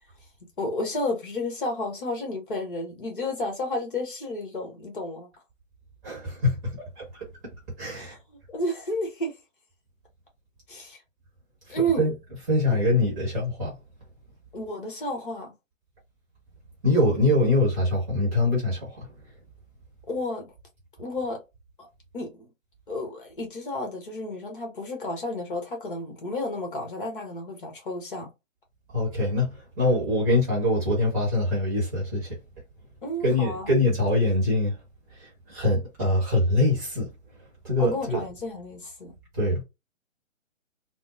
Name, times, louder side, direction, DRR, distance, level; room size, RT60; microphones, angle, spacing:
voice 1, 0.6-5.3 7.9-9.3 10.7-11.0 11.7-12.1 12.7-12.8 14.5-15.5 20.1-20.5 21.0-21.4 21.8-21.9 22.1-22.5 22.9-28.3 33.0-33.7 37.8-39.1, left 1 dB, 40° left, 1.1 m, -31 dB
voice 2, 6.0-6.6 7.8-8.2 12.0-12.1 12.5-13.7 16.8-18.8 28.9-29.5 29.8-32.3 33.2-34.7 35.5-37.1 37.6-38.2 39.4-39.6, left 2 dB, 15° right, 1.0 m, -23 dB
3.5 x 2.0 x 2.5 m
figure-of-eight pair, 135°, 40 cm